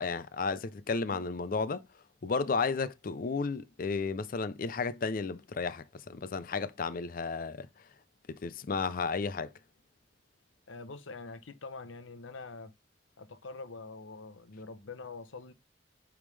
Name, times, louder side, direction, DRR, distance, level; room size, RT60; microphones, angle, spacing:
voice 1, 0.0-1.8 2.2-7.7 8.3-9.5, left 4 dB, 45° left, 0.4 m, -33 dB
voice 2, 10.7-12.7 13.2-15.5, left 3 dB, 90° left, 0.8 m, -45 dB
8.4 x 3.6 x 3.2 m
head